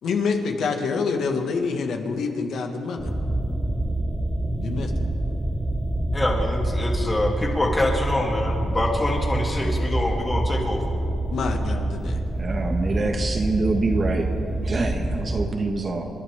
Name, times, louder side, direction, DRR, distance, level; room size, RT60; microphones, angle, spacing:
voice 1, 0.0-3.1 4.5-5.1 11.3-12.2, left 4 dB, 65° left, 3 dB, 1.8 m, -27 dB
sound 1, 3.0-15.5, right 1 dB, 10° right, 0.8 m, -26 dB
voice 2, 6.1-10.8, left 1 dB, 20° left, -1 dB, 3.0 m, -25 dB
voice 3, 12.4-14.3 14.6-16.1, right 3 dB, 35° right, 3 dB, 1.6 m, -25 dB
29.0 x 11.5 x 3.7 m, 2.5 s
cardioid pair, 90°, 0 cm